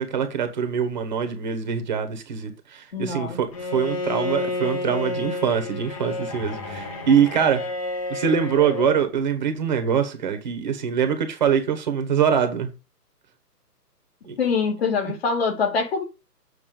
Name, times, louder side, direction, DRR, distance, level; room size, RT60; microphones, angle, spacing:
voice 1, 0.0-7.6 8.1-12.7 14.3-14.4, right 7 dB, 30° right, 1.2 m, -23 dB
voice 2, 2.9-3.4 14.4-16.0, left 5 dB, 40° left, 2.3 m, -24 dB
Bowed string instrument, 3.5-9.0, left 2 dB, 20° left, 1.0 m, -30 dB
7.8 x 5.9 x 5.2 m
hypercardioid pair, 150°, 48 cm